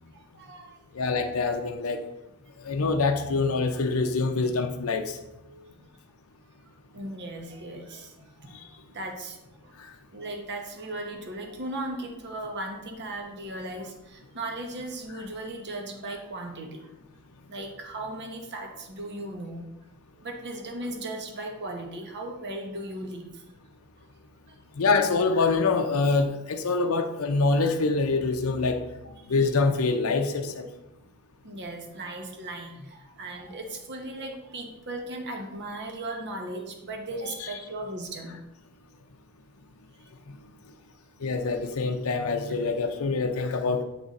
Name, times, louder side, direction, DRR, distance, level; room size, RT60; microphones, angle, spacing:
voice 1, 0.1-1.1 5.4-5.9 6.9-9.7 10.1-16.9 17.5-19.6 20.2-23.4 24.5-24.6 29.2-29.4 31.4-38.3 40.0-40.1, right 1 dB, 55° right, 2 dB, 1.0 m, -37 dB
voice 2, 0.9-2.0 2.6-5.2 8.5-8.6 9.8-9.9 24.8-28.8 29.3-30.7 37.4-37.6 41.2-43.8, left 3 dB, 70° left, 5 dB, 0.5 m, -25 dB
7.9 x 3.8 x 4.1 m, 0.93 s
head